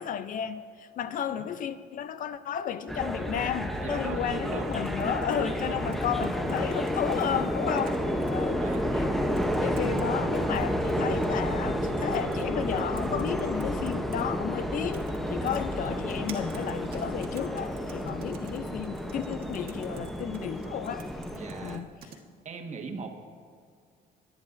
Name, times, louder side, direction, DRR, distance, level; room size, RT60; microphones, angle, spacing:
voice 1, 0.0-8.0 8.3-9.1 9.6-21.1 21.6-21.9, left 9 dB, 55° left, 0.5 m, -33 dB
voice 2, 1.1-1.5 3.8-4.7 5.3-5.9 8.4-8.8 21.4-21.8 22.4-23.1, right 5 dB, 45° right, 1.5 m, -39 dB
sound 1, 2.9-21.8, equal, ahead, 0.7 m, -31 dB
sound 2, 4.7-7.2 7.7-8.3 8.7-8.8 9.4-10.1 10.4-11.4 12.1-12.4 12.7-14.2 14.9-15.2 15.5-22.2, right 7 dB, 60° right, 1.5 m, -50 dB
20.0 x 9.5 x 2.6 m
cardioid pair, 110°, 17 cm